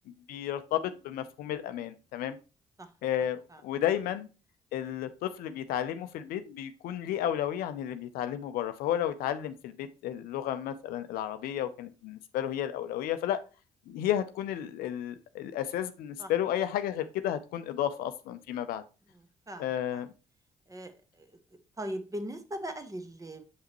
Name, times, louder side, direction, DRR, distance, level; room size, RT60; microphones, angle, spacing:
voice 1, 0.3-2.4 3.0-4.3 4.7-13.4 13.9-18.8 19.6-20.1, left 11 dB, 60° left, 11 dB, 0.5 m, -32 dB
voice 2, 19.1-20.0 20.7-21.4 21.8-23.4, right 1 dB, 20° right, 9 dB, 1.1 m, -40 dB
6.6 x 5.6 x 2.9 m, 0.32 s
figure-of-eight pair, 45°, 17 cm